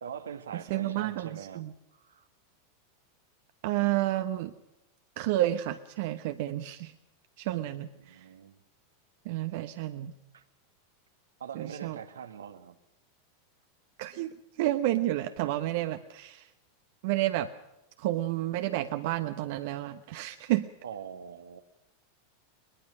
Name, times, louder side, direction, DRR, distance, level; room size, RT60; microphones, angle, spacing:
voice 1, 0.0-2.3 7.6-8.6 10.3-10.4 11.4-12.8 20.8-21.6, right 7 dB, 75° right, 9 dB, 1.4 m, -43 dB
voice 2, 0.7-1.7 3.6-4.5 5.2-6.9 7.4-8.3 9.2-10.1 11.5-12.0 14.0-16.5 17.0-17.5 18.0-20.7, right 15 dB, 60° right, 9 dB, 1.0 m, -30 dB
22.0 x 21.5 x 6.2 m, 0.89 s
figure-of-eight pair, 90°, 0 cm